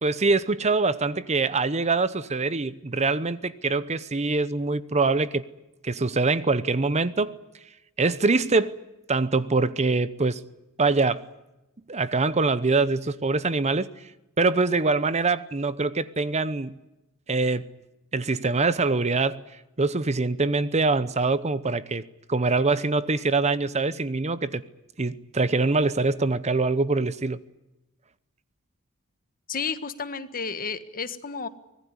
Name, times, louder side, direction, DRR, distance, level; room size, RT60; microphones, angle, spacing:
voice 1, 0.0-5.4 5.8-7.4 8.0-8.8 9.1-10.4 10.8-11.2 11.9-13.9 14.4-16.7 17.3-17.7 18.1-19.4 19.8-22.0 22.3-24.6 25.0-27.4, right 3 dB, 30° right, 0.8 m, -24 dB
voice 2, 29.5-31.5, left 5 dB, 40° left, 1.6 m, -32 dB
25.0 x 18.5 x 9.8 m
head